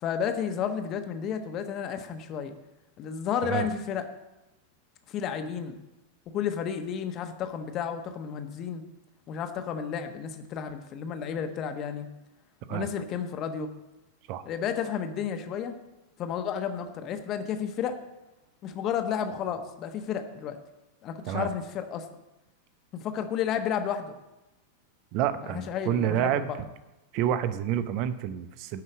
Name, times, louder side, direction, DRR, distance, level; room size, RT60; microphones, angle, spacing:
voice 1, 0.0-2.5 3.0-4.0 5.1-5.8 6.3-8.8 9.3-12.1 12.7-13.7 14.4-15.8 16.2-18.0 18.6-20.6 21.0-22.0 22.9-24.2 25.4-26.6, left 8 dB, 35° left, 7 dB, 1.2 m, -32 dB
voice 2, 25.1-26.5 27.1-28.8, right 10 dB, 45° right, 13 dB, 0.8 m, -28 dB
12.0 x 5.5 x 8.4 m, 0.99 s
figure-of-eight pair, 90°, 0 cm